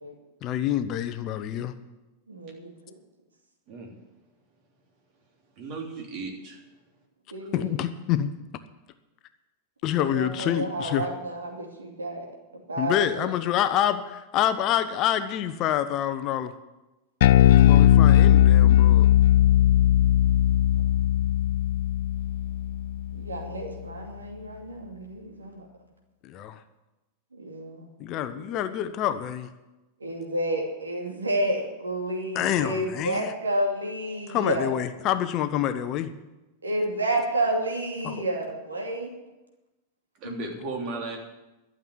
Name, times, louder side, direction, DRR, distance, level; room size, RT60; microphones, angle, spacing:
voice 1, 0.4-1.7 7.5-8.3 9.8-11.1 12.8-16.5 17.6-19.1 26.2-26.6 28.0-29.5 32.3-33.3 34.3-36.1 38.0-38.2, left 11 dB, 35° left, 11 dB, 0.8 m, -27 dB
voice 2, 2.3-2.7 7.3-7.8 9.9-12.3 12.7-13.3 23.1-25.6 27.4-27.9 28.3-28.4 30.0-34.7 36.6-39.1 40.2-40.4, right 1 dB, 75° right, 1 dB, 2.6 m, -30 dB
voice 3, 5.6-6.6 40.2-41.2, right 3 dB, 40° right, 1 dB, 3.3 m, -35 dB
Bass guitar, 17.2-23.7, left 12 dB, 55° left, 0.4 m, -18 dB
12.5 x 7.5 x 9.9 m, 1.0 s
figure-of-eight pair, 90°, 0 cm